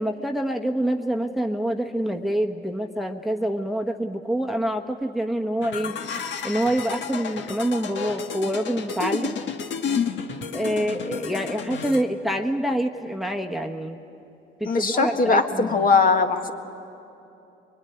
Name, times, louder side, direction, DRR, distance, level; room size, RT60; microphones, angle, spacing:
voice 1, 0.0-6.0 6.4-9.4 10.5-14.0 14.6-15.9, right 1 dB, ahead, 3 dB, 1.2 m, -26 dB
sound 1, 5.6-12.0, left 6 dB, 65° left, 1.6 m, -31 dB
voice 2, 14.6-16.5, left 4 dB, 45° left, 5 dB, 1.8 m, -20 dB
24.0 x 22.5 x 10.0 m, 2.8 s
cardioid pair, 90°, 20 cm